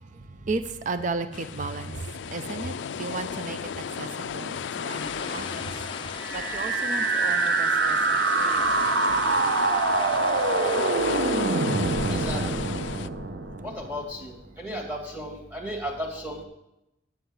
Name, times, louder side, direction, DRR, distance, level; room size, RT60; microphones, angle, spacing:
voice 1, 0.0-8.7 10.5-10.6, right 3 dB, 45° right, 11 dB, 0.5 m, -35 dB
sound 1, 1.3-13.1, left 8 dB, 70° left, 0.3 m, -35 dB
sound 2, 4.9-10.9, left 4 dB, 25° left, 0.7 m, -39 dB
sound 3, 6.2-14.2, right 3 dB, 65° right, 0.8 m, -25 dB
voice 2, 12.1-12.7 13.6-16.4, equal, 10° right, 1 dB, 2.2 m, -35 dB
9.8 x 7.0 x 6.4 m, 0.88 s
head